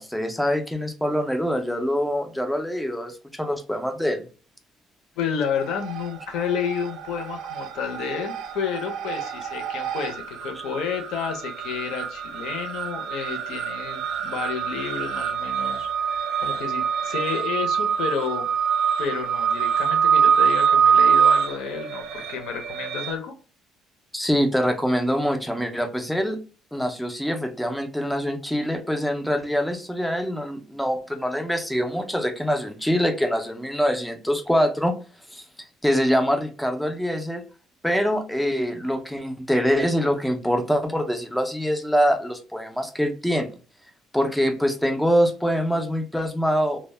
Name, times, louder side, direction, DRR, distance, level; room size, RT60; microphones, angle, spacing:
voice 1, 0.0-4.3 24.1-26.4 26.7-35.0 35.3-35.4 35.8-37.4 37.8-43.6 44.1-46.9, equal, ahead, 5 dB, 0.3 m, -24 dB
voice 2, 5.2-15.9 16.4-18.5 19.0-23.3, left 7 dB, 65° left, 3 dB, 0.5 m, -30 dB
sound 1, 5.6-6.2 6.5-23.1, right 7 dB, 80° right, 0.3 m, -24 dB
2.0 x 2.0 x 3.1 m, 0.37 s
cardioid pair, 170°, 0 cm